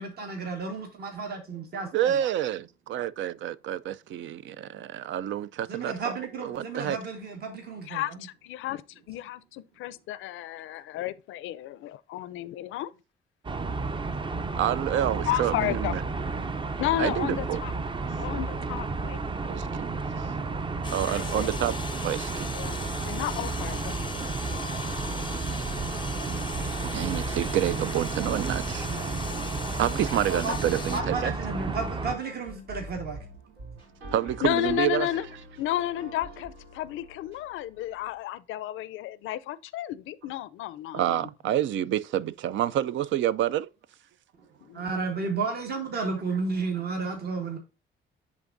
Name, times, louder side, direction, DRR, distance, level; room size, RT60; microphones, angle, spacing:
voice 1, 0.0-2.3 5.7-8.3 30.3-30.6 30.9-33.2 44.7-47.6, right 4 dB, 55° right, 1.5 m, -32 dB
voice 2, 1.9-5.9 6.4-7.0 14.6-16.0 17.0-17.6 19.5-19.9 20.9-21.7 22.0-22.5 26.3-26.5 26.8-28.9 29.8-31.3 34.1-35.1 40.9-43.7, right 11 dB, 70° right, 0.4 m, -28 dB
voice 3, 7.9-8.8 9.1-12.9 15.3-16.0 16.8-17.7 18.2-19.2 21.0-21.5 22.5-22.8 23.0-23.9 34.4-35.3 35.6-41.3 44.6-44.8, left 14 dB, 85° left, 0.5 m, -32 dB
sound 1, 13.4-32.2, right 3 dB, 25° right, 0.5 m, -32 dB
sound 2, 20.8-31.0, left 5 dB, 25° left, 0.5 m, -40 dB
sound 3, 22.5-38.2, right 1 dB, 90° right, 3.0 m, -45 dB
10.5 x 3.6 x 2.6 m
cardioid pair, 90°, 20 cm